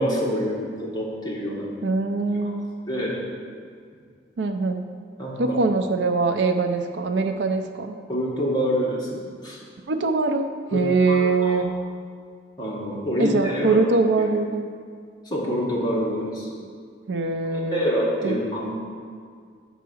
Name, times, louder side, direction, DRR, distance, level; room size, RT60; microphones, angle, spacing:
voice 1, 0.0-1.7 2.4-2.5 2.9-3.2 5.2-5.6 8.1-9.6 10.7-11.6 12.6-13.8 15.3-16.5 17.5-18.7, equal, 25° left, -5 dB, 1.7 m, -26 dB
voice 2, 1.8-2.7 4.4-4.8 5.4-8.0 9.9-11.7 13.2-14.7 17.1-17.8 18.2-18.4, right 3 dB, 75° right, 7 dB, 0.5 m, -23 dB
8.0 x 4.7 x 6.2 m, 2.1 s
head